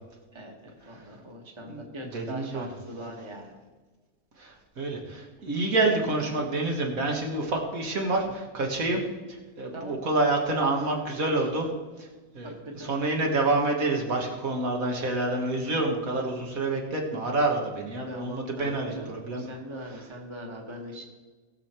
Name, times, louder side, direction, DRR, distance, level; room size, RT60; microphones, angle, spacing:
voice 1, 0.3-3.6 8.8-9.0 9.7-10.0 12.4-13.3 18.0-21.0, equal, 20° right, 1 dB, 1.5 m, -41 dB
voice 2, 2.1-2.7 4.4-9.0 9.3-11.7 12.0-12.1 12.3-19.5, right 2 dB, 65° right, 1 dB, 2.1 m, -28 dB
19.0 x 6.6 x 4.5 m, 1.3 s
omnidirectional pair, 1.6 m